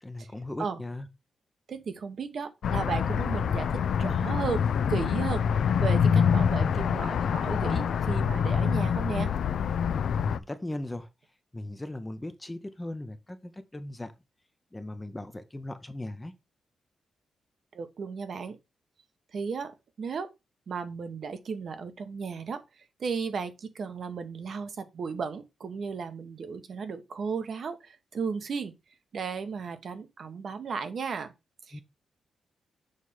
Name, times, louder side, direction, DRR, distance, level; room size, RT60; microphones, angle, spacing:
voice 1, 0.0-1.1 10.2-11.1 11.5-14.1 14.7-16.3 31.7-31.8, left 1 dB, 10° left, 0.6 m, -38 dB
voice 2, 1.7-9.3 17.7-18.6 19.3-20.3 20.7-22.6 23.0-28.7 29.1-31.3 31.7-31.8, right 5 dB, 50° right, 0.9 m, -35 dB
sound 1, 2.6-10.4, left 7 dB, 65° left, 0.4 m, -26 dB
6.5 x 3.2 x 5.4 m
wide cardioid pair, 155°, 0 cm